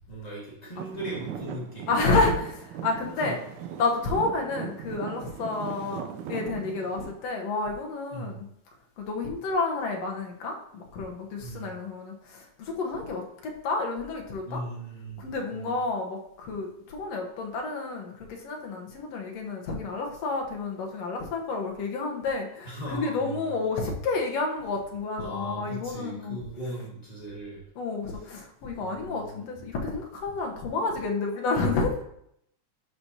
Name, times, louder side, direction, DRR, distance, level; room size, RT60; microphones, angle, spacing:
voice 1, 0.1-2.2 3.1-3.3 8.1-8.4 11.4-11.7 14.4-15.7 22.6-23.5 25.2-27.6 28.8-29.4, right 1 dB, 45° left, -5 dB, 0.5 m, -38 dB
Traffic noise roadway noise / Engine, 0.8-7.1, right 9 dB, 75° right, 2.1 m, -39 dB
voice 2, 1.9-3.4 3.8-8.5 9.0-14.6 15.2-26.4 27.8-32.0, left 3 dB, 60° left, 1 dB, 1.9 m, -30 dB
11.5 x 5.2 x 2.8 m, 0.73 s
omnidirectional pair, 3.7 m